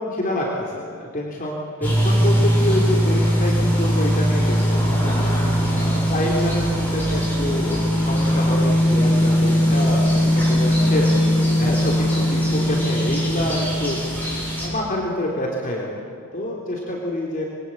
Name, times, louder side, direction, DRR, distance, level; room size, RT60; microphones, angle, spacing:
voice 1, 0.0-5.3 5.7-11.1 11.6-14.0 14.6-17.4, left 1 dB, 40° left, -3 dB, 3.4 m, -27 dB
sound 1, 1.8-14.7, equal, 10° left, 7.1 m, -20 dB
27.0 x 22.0 x 8.6 m, 2.3 s
head